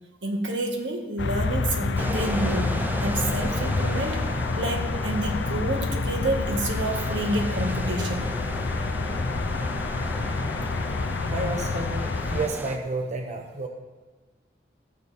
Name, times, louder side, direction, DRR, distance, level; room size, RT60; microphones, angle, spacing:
voice 1, 0.2-8.3, right 1 dB, 85° right, 2 dB, 1.7 m, -29 dB
sound 1, 1.2-12.5, left 3 dB, 75° left, 0.6 m, -28 dB
sound 2, 2.0-12.8, right 1 dB, 10° right, 0.6 m, -36 dB
voice 2, 11.2-13.7, right 3 dB, 40° right, 3 dB, 0.9 m, -31 dB
15.5 x 7.0 x 4.2 m, 1.4 s
head